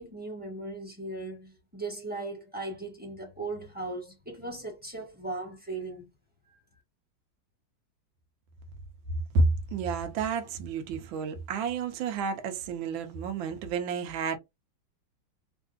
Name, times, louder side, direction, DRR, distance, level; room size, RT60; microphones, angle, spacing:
voice 1, 0.0-6.1 6.5-6.6, right 2 dB, 5° right, 0.8 m, -38 dB
voice 2, 9.3-14.4, right 4 dB, 75° right, 1.4 m, -30 dB
3.4 x 2.6 x 2.3 m
omnidirectional pair, 2.3 m